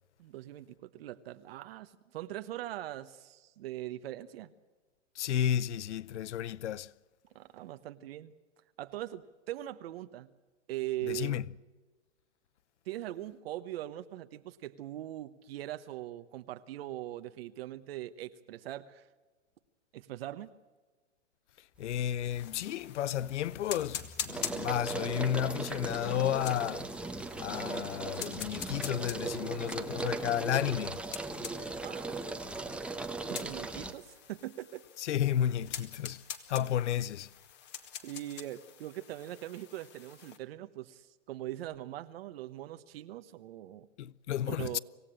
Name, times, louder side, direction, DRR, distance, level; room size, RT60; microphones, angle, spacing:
voice 1, 0.2-4.5 7.3-8.3 8.8-10.3 10.7-11.5 12.9-19.1 19.9-20.5 31.8-32.2 33.3-34.8 38.0-43.9 44.5-44.8, right 14 dB, 55° right, 1.1 m, -41 dB
voice 2, 5.2-6.9 11.0-11.4 21.8-26.9 27.4-31.0 35.0-36.2 36.5-37.3 44.0-44.8, left 10 dB, 70° left, 0.7 m, -32 dB
sound 1, 21.9-22.4 22.8-33.9, right 3 dB, 5° right, 1.0 m, -38 dB
sound 2, 22.3-40.4, left 9 dB, 30° left, 2.0 m, -46 dB
26.5 x 16.0 x 8.8 m
hypercardioid pair, 130°, 36 cm